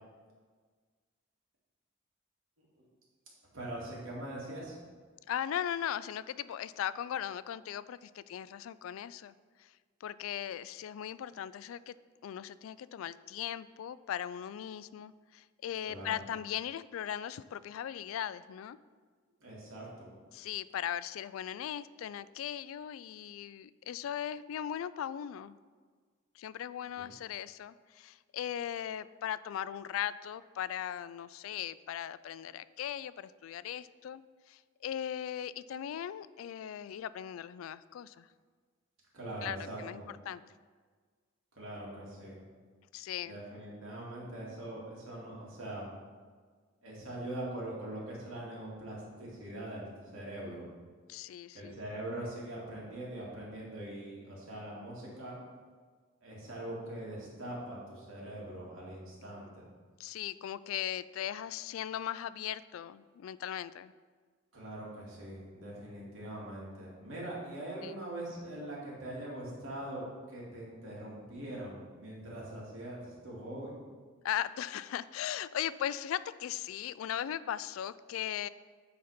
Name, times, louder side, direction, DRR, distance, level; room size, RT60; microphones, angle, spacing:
voice 1, 3.5-4.8 15.9-16.1 19.4-20.1 27.0-27.1 39.1-40.1 41.6-42.4 43.2-45.9 46.8-50.6 51.5-55.3 56.2-59.6 64.5-73.7, right 1 dB, 80° right, -5 dB, 2.6 m, -42 dB
voice 2, 5.3-9.3 9.6-9.7 10.0-12.0 12.2-18.8 20.3-25.6 26.4-34.2 34.5-38.3 39.4-40.4 42.9-43.4 51.1-51.8 60.0-63.9 67.8-68.0 74.2-78.5, left 10 dB, 85° left, 16 dB, 0.3 m, -38 dB
9.8 x 4.1 x 5.1 m, 1.5 s
head